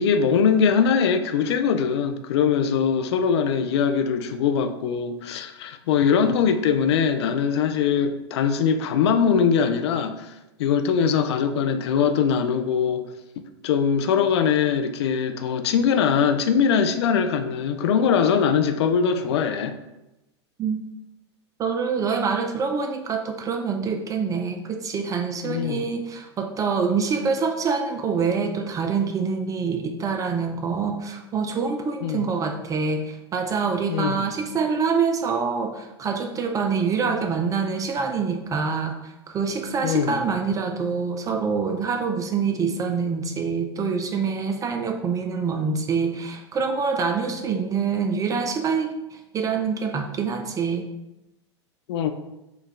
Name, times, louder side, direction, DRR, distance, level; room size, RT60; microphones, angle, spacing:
voice 1, 0.0-10.3 10.6-13.0 13.6-19.7 25.5-25.8 32.0-32.2 33.9-34.3 39.8-40.2 51.9-52.1, left 7 dB, 65° left, 8 dB, 0.4 m, -22 dB
voice 2, 21.6-50.9, right 5 dB, 25° right, 5 dB, 0.3 m, -26 dB
4.5 x 2.3 x 3.3 m, 0.94 s
hypercardioid pair, 95°, 15 cm